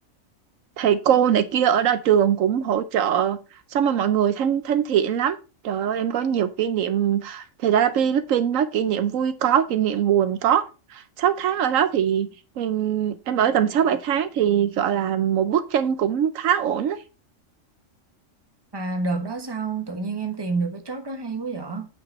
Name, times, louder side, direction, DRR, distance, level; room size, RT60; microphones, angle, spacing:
voice 1, 0.8-3.4 3.7-5.4 5.6-10.7 10.9-17.0, right 9 dB, 80° right, 1.1 m, -22 dB
voice 2, 18.7-21.9, right 3 dB, 20° right, 1.2 m, -28 dB
8.8 x 5.8 x 4.1 m
omnidirectional pair, 1.4 m